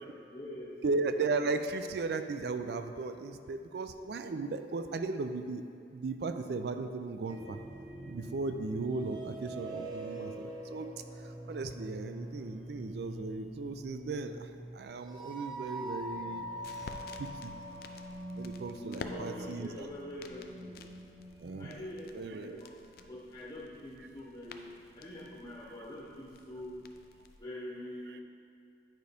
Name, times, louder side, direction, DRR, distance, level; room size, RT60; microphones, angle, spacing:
voice 1, 0.0-0.8 3.9-4.2 18.7-20.9 21.6-26.8 27.4-28.2, left 1 dB, 30° left, -5 dB, 0.9 m, -45 dB
voice 2, 0.8-5.6 5.9-7.6 8.1-10.9 11.2-16.5 16.8-16.9 17.2-17.5 18.4-19.9 21.4-21.9 22.1-22.6 28.1-28.2, right 3 dB, 70° right, 9 dB, 0.4 m, -36 dB
sound 1, 7.3-21.5, right 1 dB, 25° right, 0.7 m, -44 dB
sound 2, 16.1-27.4, left 4 dB, 55° left, 0.4 m, -52 dB
9.2 x 5.1 x 3.4 m, 2.4 s
head